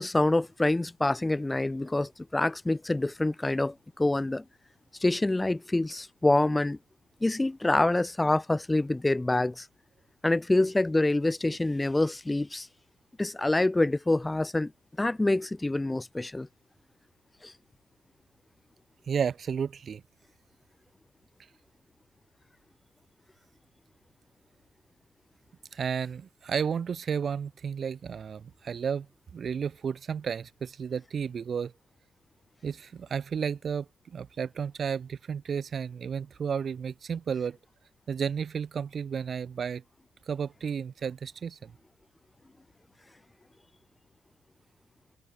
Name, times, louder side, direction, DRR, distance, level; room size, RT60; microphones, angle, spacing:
voice 1, 0.0-4.4 5.0-6.8 7.2-9.7 10.2-12.7 13.2-14.7 15.0-16.5 17.4-17.5, left 2 dB, 15° left, 0.3 m, -26 dB
voice 2, 19.1-20.0 25.7-29.1 29.3-31.7 32.6-37.6 38.1-39.8 40.3-41.7, right 7 dB, 50° right, 0.8 m, -32 dB
cardioid pair, 90°, 0 cm